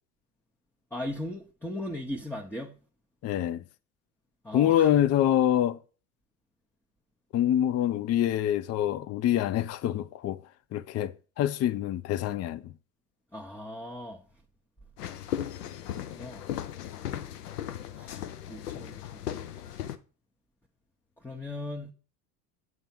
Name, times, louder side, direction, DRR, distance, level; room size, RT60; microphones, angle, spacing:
voice 1, 0.9-2.8 4.4-4.9 13.3-14.2 15.9-16.4 18.0-18.2 18.5-19.5 21.2-21.9, left 1 dB, 5° left, 1.0 m, -38 dB
voice 2, 3.2-3.6 4.5-5.8 7.3-10.4 10.7-12.6, left 11 dB, 35° left, 0.5 m, -25 dB
sound 1, 15.0-20.0, left 11 dB, 80° left, 0.8 m, -37 dB
9.4 x 3.4 x 5.8 m
hypercardioid pair, 75°, 46 cm